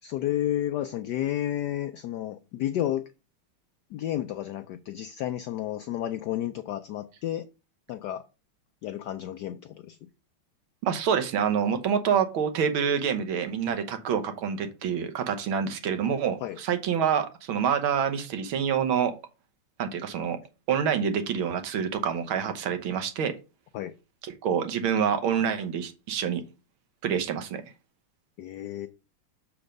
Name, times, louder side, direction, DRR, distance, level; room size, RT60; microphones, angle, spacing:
voice 1, 0.0-3.1 3.9-7.5 7.9-8.2 8.8-10.1 16.4-16.6 23.7-23.9 28.4-28.9, left 12 dB, 85° left, 0.9 m, -31 dB
voice 2, 10.8-19.1 19.8-20.4 20.7-23.3 24.2-26.4 27.0-27.6, right 7 dB, 75° right, 1.7 m, -27 dB
7.0 x 4.4 x 5.1 m
omnidirectional pair, 2.3 m